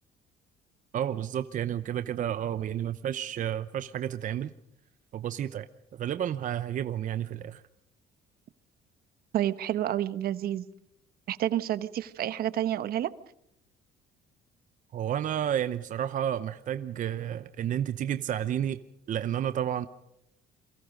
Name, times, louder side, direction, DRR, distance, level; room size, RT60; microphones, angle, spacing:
voice 1, 0.9-4.5 5.1-5.7 5.9-7.6 14.9-18.8 19.1-19.9, right 10 dB, 50° right, 0.8 m, -31 dB
voice 2, 9.3-10.6 11.3-13.1, right 12 dB, 65° right, 1.1 m, -29 dB
29.0 x 23.0 x 5.2 m
cardioid pair, 110°, 17 cm